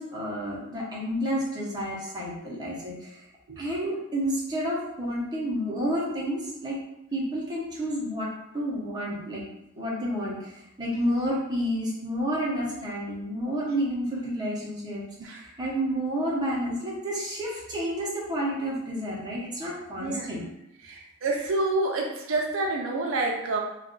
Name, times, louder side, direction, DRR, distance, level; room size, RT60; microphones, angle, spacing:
voice 1, 0.0-3.3 3.6-6.8 7.1-9.4 9.8-20.5, equal, 20° right, -5 dB, 0.8 m, -30 dB
voice 2, 20.8-23.6, right 2 dB, 70° right, 0 dB, 0.4 m, -28 dB
2.4 x 2.3 x 3.6 m, 0.87 s
head